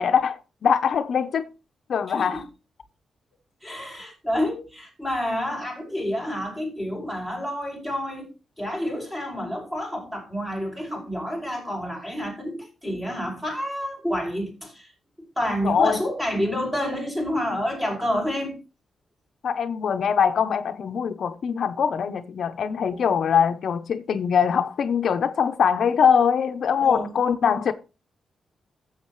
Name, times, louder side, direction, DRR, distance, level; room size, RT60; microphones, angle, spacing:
voice 1, 0.0-1.4 1.9-2.4 15.6-16.0 19.4-27.7, left 7 dB, 65° left, 0.7 m, -22 dB
voice 2, 2.1-2.4 3.6-8.3 8.6-14.9 15.4-18.6 22.9-23.0 26.8-27.1, equal, 10° right, 5.6 m, -29 dB
15.0 x 7.3 x 3.1 m
wide cardioid pair, 130°, 0 cm